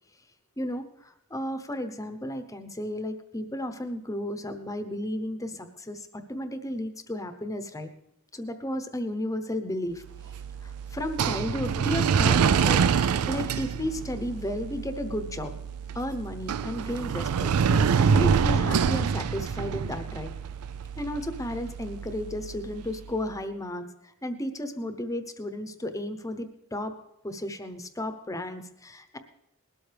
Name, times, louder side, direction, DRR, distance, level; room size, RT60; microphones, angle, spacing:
voice 1, 0.6-7.9 8.3-10.0 10.6-15.5 15.9-20.3 21.0-26.9 27.2-29.2, left 1 dB, 15° left, 8 dB, 0.9 m, -33 dB
sound 1, 10.1-23.2, right 6 dB, 75° right, 0.4 m, -27 dB
20.0 x 12.5 x 3.4 m, 0.79 s
head